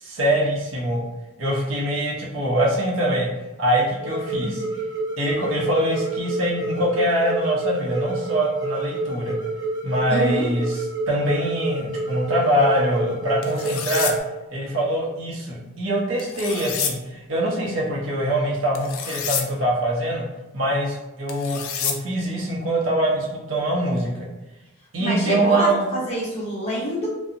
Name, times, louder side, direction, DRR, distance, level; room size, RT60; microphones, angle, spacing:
voice 1, 0.0-1.0 1.4-3.3 3.6-4.6 5.2-9.4 9.8-10.8 11.1-14.1 14.5-20.3 20.5-24.3 24.9-25.8, right 1 dB, 70° right, -3 dB, 0.6 m, -23 dB
sound 1, 4.0-14.2, right 2 dB, 20° right, 0.9 m, -29 dB
voice 2, 10.1-10.5 25.0-27.1, equal, 30° left, -6 dB, 0.9 m, -26 dB
sound 2, 13.4-14.1 16.2-16.9 18.7-19.5 21.3-21.9, left 7 dB, 80° left, 0.3 m, -28 dB
2.6 x 2.0 x 2.5 m, 1.0 s
head